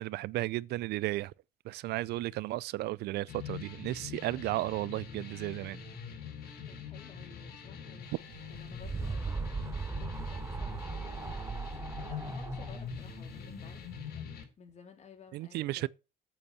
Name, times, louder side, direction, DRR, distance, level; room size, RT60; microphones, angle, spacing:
voice 1, 0.0-1.3 1.7-5.8 15.3-15.9, right 17 dB, 75° right, 0.5 m, -34 dB
sound 1, 3.3-14.4, left 6 dB, 65° left, 5.0 m, -43 dB
voice 2, 6.7-15.9, left 6 dB, 40° left, 3.3 m, -55 dB
sound 2, 8.3-13.9, right 4 dB, 15° right, 0.6 m, -38 dB
8.9 x 7.0 x 7.5 m
cardioid pair, 110°, 17 cm